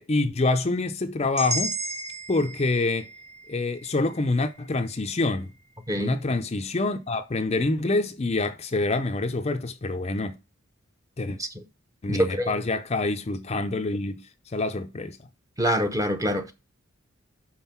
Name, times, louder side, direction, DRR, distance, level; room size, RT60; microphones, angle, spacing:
voice 1, 0.0-1.7 2.3-3.1 3.5-5.5 6.0-10.4 11.2-11.4 12.0-14.2 14.5-15.2, left 2 dB, 30° left, 0.6 m, -26 dB
sound 1, 1.4-5.4, right 1 dB, 35° right, 1.2 m, -35 dB
voice 2, 12.1-12.5 15.6-16.5, equal, 15° right, 0.9 m, -25 dB
5.6 x 4.9 x 5.8 m
head